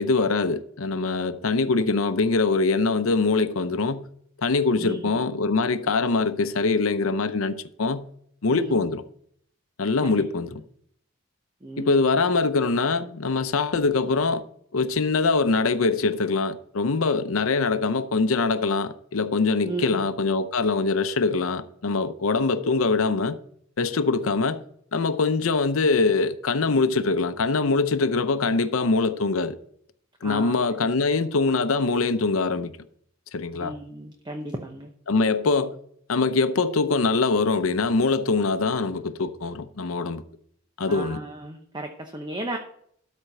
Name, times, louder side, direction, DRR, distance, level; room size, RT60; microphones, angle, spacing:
voice 1, 0.0-4.1 4.4-8.1 8.4-9.0 9.8-10.5 11.8-14.4 14.7-23.4 23.8-24.6 24.9-29.6 30.2-32.7 33.3-33.8 35.1-35.8 36.1-40.2 40.8-41.2, left 3 dB, 70° left, 0.7 m, -23 dB
voice 2, 4.8-5.2 8.5-8.7 10.0-10.1 11.6-12.0 19.6-20.0 30.2-30.6 33.5-34.9 40.9-42.6, right 1 dB, 20° right, 0.8 m, -34 dB
13.0 x 4.4 x 6.6 m
head